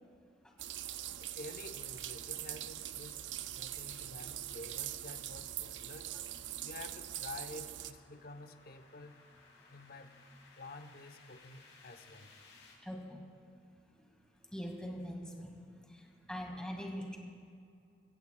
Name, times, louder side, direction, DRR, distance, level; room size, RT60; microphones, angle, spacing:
sound 1, 0.6-7.9, right 12 dB, 80° right, 0.5 m, -43 dB
voice 1, 1.2-3.2 3.5-6.2 6.6-9.3 9.7-10.1 10.6-12.3, left 2 dB, 55° left, 7 dB, 0.8 m, -50 dB
sound 2, 4.4-12.7, left 3 dB, 90° left, 3.4 m, -63 dB
voice 2, 12.8-13.2 14.5-15.5 15.9-16.0 16.3-17.2, equal, 5° left, 0 dB, 1.9 m, -42 dB
23.5 x 15.5 x 2.3 m, 2.4 s
head